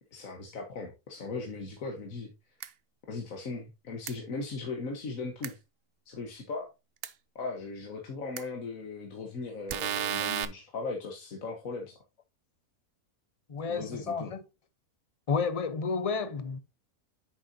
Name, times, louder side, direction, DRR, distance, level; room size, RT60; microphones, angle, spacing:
voice 1, 0.1-2.3 3.1-5.6 6.1-6.7 7.4-12.0 13.7-14.3, left 3 dB, 60° left, 1.7 m, -38 dB
sound 1, 2.6-2.7 4.1-4.2 5.4-5.5 7.0-7.1 8.4-8.5 9.7-10.4, right 9 dB, 60° right, 0.6 m, -32 dB
voice 2, 13.5-14.4 15.3-16.6, left 5 dB, 35° left, 0.6 m, -31 dB
9.0 x 6.5 x 2.7 m
omnidirectional pair, 1.6 m